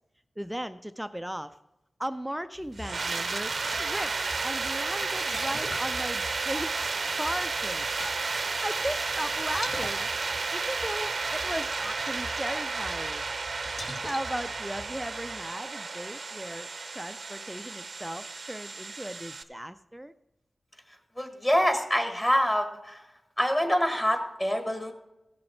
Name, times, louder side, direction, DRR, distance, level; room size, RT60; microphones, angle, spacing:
voice 1, 0.4-1.6 2.0-4.2 4.4-7.9 8.6-10.1 10.5-13.2 13.8-16.7 16.9-20.1, equal, 5° right, 10 dB, 0.3 m, -36 dB
sound 1, 2.6-15.4, left 1 dB, 65° left, 2.0 m, -45 dB
sound 2, 2.8-19.4, right 4 dB, 65° right, 0.6 m, -32 dB
voice 2, 21.1-23.0 23.4-24.9, equal, 20° left, 5 dB, 1.5 m, -26 dB
15.5 x 6.4 x 4.4 m, 0.94 s
wide cardioid pair, 100°, 0 cm